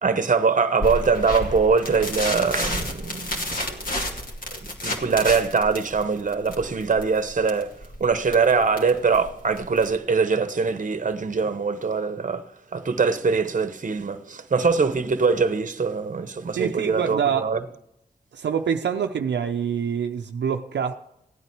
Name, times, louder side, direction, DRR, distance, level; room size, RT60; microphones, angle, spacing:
voice 1, 0.0-3.9 4.5-7.7 8.0-17.6, right 5 dB, 45° right, 1.0 m, -23 dB
sound 1, 0.8-10.0, left 1 dB, 50° left, 2.5 m, -31 dB
voice 2, 16.6-17.5 18.3-20.9, right 7 dB, 80° right, 0.6 m, -25 dB
16.0 x 9.1 x 4.7 m
cardioid pair, 40°, 18 cm